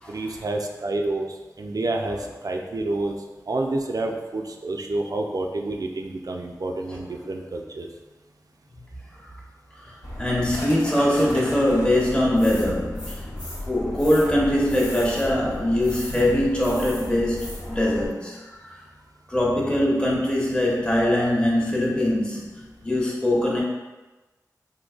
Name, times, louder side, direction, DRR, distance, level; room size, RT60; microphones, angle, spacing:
voice 1, 0.1-2.2 2.4-3.2 3.5-7.9, right 2 dB, 60° right, 2 dB, 0.4 m, -28 dB
voice 2, 9.7-13.2 13.6-18.8 19.3-23.6, left 1 dB, 15° left, -5 dB, 0.9 m, -22 dB
sound 1, 10.0-18.1, left 1 dB, 85° left, 0.9 m, -35 dB
3.8 x 2.7 x 2.4 m, 1.2 s
cardioid pair, 40°, 7 cm